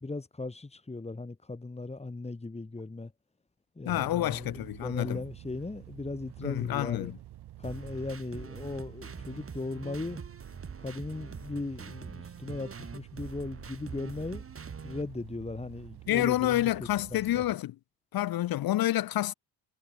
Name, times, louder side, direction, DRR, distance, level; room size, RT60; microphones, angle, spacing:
voice 1, 0.0-3.1 3.8-7.1 7.6-10.2 10.8-14.4 14.8-17.4, left 3 dB, 15° left, 2.9 m, -38 dB
voice 2, 3.8-5.2 6.4-7.2 16.1-17.7 18.1-19.3, left 14 dB, 60° left, 0.8 m, -28 dB
sound 1, 3.9-17.6, right 13 dB, 70° right, 2.2 m, -49 dB
sound 2, 7.6-15.0, right 5 dB, 35° right, 5.9 m, -44 dB
cardioid pair, 110°, 40 cm